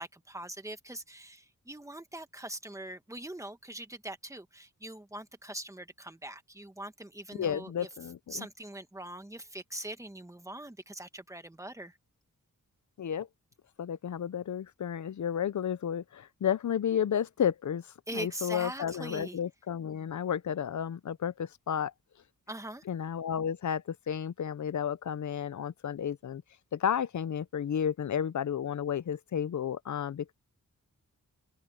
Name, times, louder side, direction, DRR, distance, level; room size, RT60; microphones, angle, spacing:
voice 1, 0.0-7.9 8.3-12.0 18.1-19.4 22.5-22.8, right 1 dB, 10° right, 1.4 m, -42 dB
voice 2, 7.3-8.5 13.0-13.3 13.8-21.9 22.9-26.4 26.7-30.3, left 8 dB, 60° left, 0.6 m, -32 dB
wide cardioid pair, 175°, 33 cm